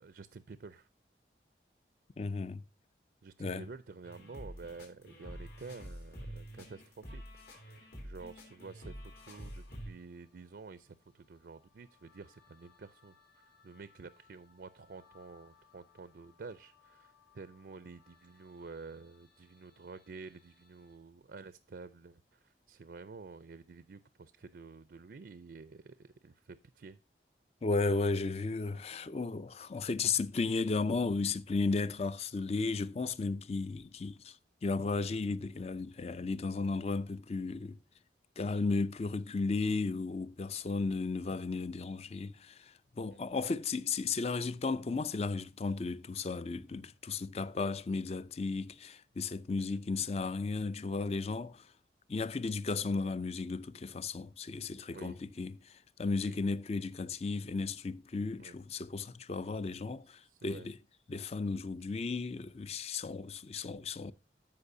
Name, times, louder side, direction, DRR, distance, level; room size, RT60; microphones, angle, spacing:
voice 1, 0.0-0.9 3.2-13.2 13.6-27.0 40.8-41.0 43.1-43.3 49.6-49.8 54.9-55.2 56.2-56.4 58.3-58.6 60.2-60.7, right 4 dB, 60° right, 0.5 m, -50 dB
voice 2, 2.2-2.6 3.4-3.6 27.6-34.4 34.6-37.8 38.4-51.7 52.1-60.8 61.1-64.1, left 3 dB, 35° left, 0.4 m, -34 dB
sound 1, 4.0-9.9, equal, 65° left, 3.1 m, -47 dB
sound 2, 9.0-21.0, left 6 dB, 80° left, 4.7 m, -68 dB
14.5 x 5.4 x 2.6 m
head